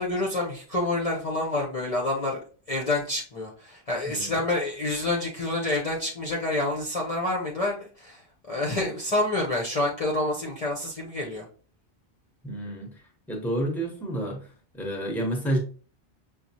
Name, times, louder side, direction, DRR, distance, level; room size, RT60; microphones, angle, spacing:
voice 1, 0.0-2.4 2.7-8.2 8.5-11.5, left 2 dB, 40° left, -2 dB, 0.7 m, -28 dB
voice 2, 12.4-12.9 13.3-14.5 14.7-15.6, right 1 dB, ahead, 1 dB, 0.9 m, -29 dB
6.1 x 2.4 x 2.8 m, 0.40 s
omnidirectional pair, 1.0 m